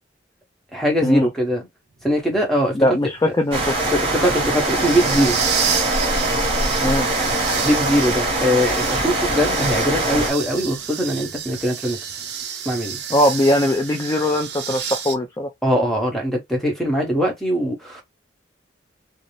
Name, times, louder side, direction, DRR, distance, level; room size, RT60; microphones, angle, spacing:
voice 1, 0.7-1.7 2.0-3.0 3.9-5.4 7.6-12.2 12.6-13.0 15.6-18.0, equal, ahead, 0.9 m, -21 dB
sound 1, 2.0-15.1, right 8 dB, 60° right, 0.5 m, -30 dB
voice 2, 2.7-3.8 6.8-7.1 13.1-15.5, left 1 dB, 20° left, 0.3 m, -20 dB
sound 2, 3.5-10.3, right 2 dB, 30° right, 1.0 m, -22 dB
2.6 x 2.0 x 3.0 m
head